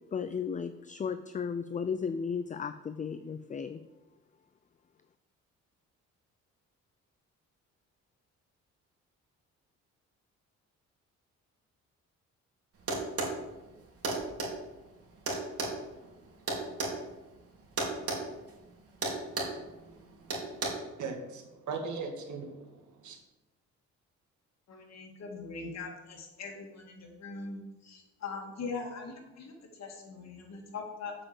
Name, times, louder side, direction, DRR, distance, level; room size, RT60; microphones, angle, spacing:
voice 1, 0.1-3.8, left 6 dB, 25° left, 11 dB, 0.5 m, -35 dB
sound 1, 12.9-13.4 14.0-14.5 15.3-17.0 17.8-18.2 18.5-18.7 19.0-19.6 20.3-20.7, right 3 dB, 50° right, 3.3 m, -32 dB
voice 2, 19.3-19.9 20.2-20.6 21.0-22.7 23.0-23.2, right 4 dB, 75° right, 3 dB, 2.1 m, -40 dB
voice 3, 24.7-31.1, left 4 dB, 60° left, 1 dB, 2.6 m, -41 dB
7.7 x 6.1 x 7.8 m, 1.1 s
cardioid pair, 90°, 30 cm